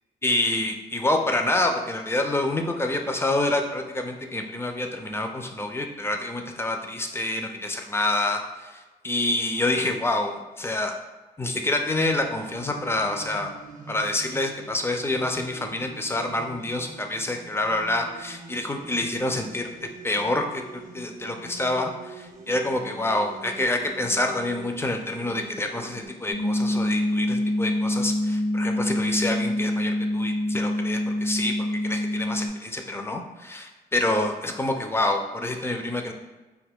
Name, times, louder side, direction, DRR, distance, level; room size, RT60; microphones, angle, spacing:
voice 1, 0.2-10.9 11.4-13.5 13.9-36.1, left 2 dB, 15° left, 4 dB, 0.4 m, -27 dB
sound 1, 12.2-26.1, right 3 dB, 45° right, 0.6 m, -44 dB
sound 2, 26.3-32.5, left 1 dB, 70° left, 0.8 m, -26 dB
2.3 x 2.2 x 3.5 m, 1.2 s
supercardioid pair, 55°, 19 cm